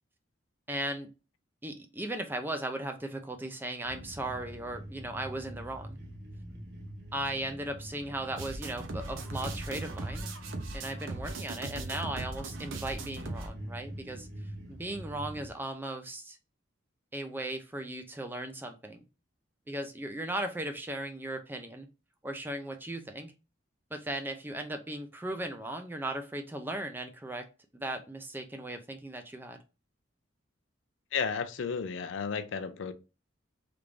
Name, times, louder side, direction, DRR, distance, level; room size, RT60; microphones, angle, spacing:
voice 1, 0.7-1.1 1.6-6.0 7.1-10.3 10.7-14.3 14.7-16.4 17.1-19.0 19.7-21.9 22.2-23.3 23.9-27.5 27.7-29.6, right 1 dB, 10° right, 0.4 m, -37 dB
sound 1, 3.8-15.5, right 1 dB, 55° right, 0.9 m, -44 dB
sound 2, 8.4-13.5, right 2 dB, 90° right, 0.7 m, -39 dB
voice 2, 31.1-32.9, left 6 dB, 75° left, 0.4 m, -33 dB
3.4 x 2.5 x 3.1 m
head